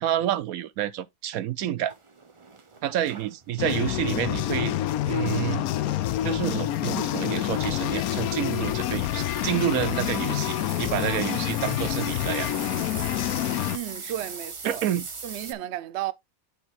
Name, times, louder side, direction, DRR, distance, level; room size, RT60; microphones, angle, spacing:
voice 1, 0.0-1.9 2.8-4.7 5.1-5.6 6.2-12.5 14.0-14.1 14.6-15.1, right 11 dB, 85° right, 1.1 m, -29 dB
sound 1, 1.9-4.2 4.7-4.9 5.9-15.5, right 4 dB, 30° right, 0.6 m, -41 dB
sound 2, 3.6-13.8, left 13 dB, 90° left, 1.1 m, -27 dB
sound 3, 6.4-8.4 8.8-11.0 11.3-12.6, left 11 dB, 65° left, 0.6 m, -43 dB
voice 2, 13.7-14.9 15.2-16.1, right 13 dB, 60° right, 0.8 m, -33 dB
8.7 x 3.1 x 4.6 m
omnidirectional pair, 1.5 m